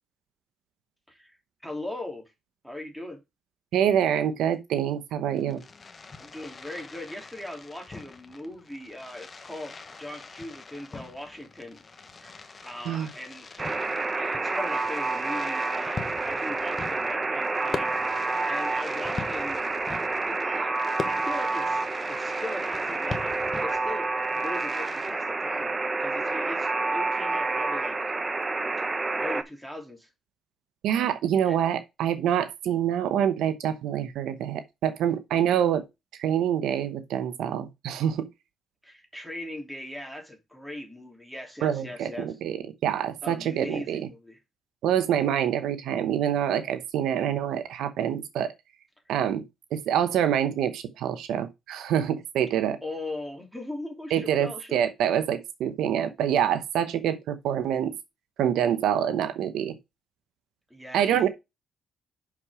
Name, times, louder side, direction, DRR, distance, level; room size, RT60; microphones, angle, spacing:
voice 1, 1.6-2.2 2.6-3.2 6.2-11.8 12.2-13.5 13.9-19.7 20.2-28.0 29.2-30.1 31.4-31.6 35.5-35.6 38.8-42.3 43.2-44.4 52.8-54.8 60.7-61.3, left 1 dB, ahead, 2.9 m, -39 dB
voice 2, 3.7-5.6 12.9-13.1 30.8-35.8 36.2-38.3 41.6-44.1 44.8-48.5 49.1-49.4 49.7-52.8 54.1-57.9 58.4-59.7 60.9-61.3, right 9 dB, 85° right, 0.9 m, -26 dB
Fireworks, 5.3-25.1, left 4 dB, 35° left, 1.1 m, -42 dB
Alarm, 13.6-29.4, right 3 dB, 25° right, 1.0 m, -29 dB
6.3 x 5.9 x 4.9 m
cardioid pair, 90°, 0 cm